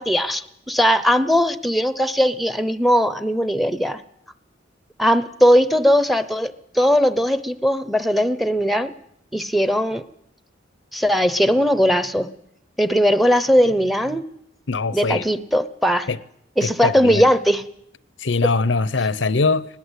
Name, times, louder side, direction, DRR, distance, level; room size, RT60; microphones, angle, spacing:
voice 1, 0.0-4.0 5.0-8.9 9.3-10.0 10.9-12.3 12.8-14.2 14.9-16.1 16.6-17.6, equal, ahead, 0.8 m, -19 dB
voice 2, 14.7-15.2 16.1-16.2 16.6-17.2 18.2-19.7, left 3 dB, 80° left, 0.8 m, -21 dB
19.5 x 19.5 x 8.2 m
head